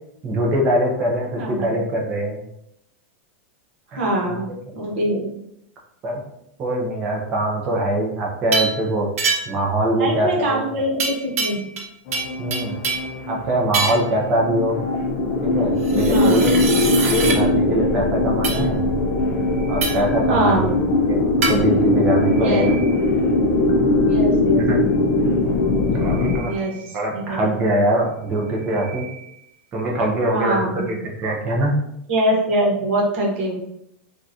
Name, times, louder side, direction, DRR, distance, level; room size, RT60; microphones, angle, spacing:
voice 1, 0.2-2.4 3.9-4.4 4.9-5.0 6.0-6.2 6.6-9.1 9.5-10.6 12.4-12.8 13.3-14.8 15.4-16.5 17.1-18.9 19.7-20.7 21.1-21.2 21.5-22.8 24.5-24.8 25.9-26.5 26.9-29.1 29.7-31.7, right 1 dB, 20° right, -2 dB, 0.6 m, -23 dB
voice 2, 1.3-1.7 3.9-4.5 4.7-5.3 10.0-11.7 16.1-16.5 20.3-20.7 22.4-22.6 24.1-24.6 26.5-26.7 27.1-27.4 30.3-30.9 32.1-33.6, right 1 dB, 55° right, -1 dB, 1.1 m, -23 dB
sound 1, 8.5-8.8 9.2-9.7 11.0-11.9 12.1-13.1 13.7-14.1 15.8-17.4 18.4-18.6 19.8-20.1 21.4-21.6, right 4 dB, 80° right, 0.8 m, -24 dB
sound 2, 12.1-26.4, left 2 dB, 30° left, 0.4 m, -20 dB
sound 3, 19.1-20.8 21.7-23.6 25.5-27.6 28.1-29.7, right 6 dB, 5° left, 1.5 m, -43 dB
3.7 x 2.4 x 2.7 m, 0.76 s
supercardioid pair, 170°, 7 cm